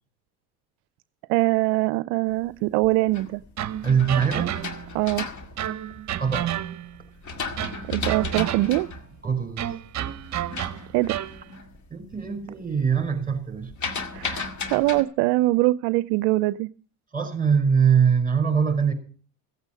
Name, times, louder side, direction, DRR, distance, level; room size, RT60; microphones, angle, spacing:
voice 1, 1.3-3.4 4.9-5.3 7.9-8.9 10.9-11.2 14.1-16.7, right 19 dB, 65° right, 16 dB, 0.6 m, -23 dB
sound 1, 2.6-6.4 6.9-11.8 12.1-12.5 12.8-15.0, left 3 dB, 40° left, 2.1 m, -34 dB
sound 2, 3.6-5.0 5.6-7.0 7.6-8.9 9.6-11.4, right 11 dB, 35° right, 1.0 m, -31 dB
voice 2, 3.8-4.6 6.2-6.5 9.2-9.6 11.9-13.7 17.1-18.9, right 7 dB, 20° right, 8 dB, 5.1 m, -22 dB
16.0 x 8.2 x 6.3 m, 0.43 s
hypercardioid pair, 80°, 46 cm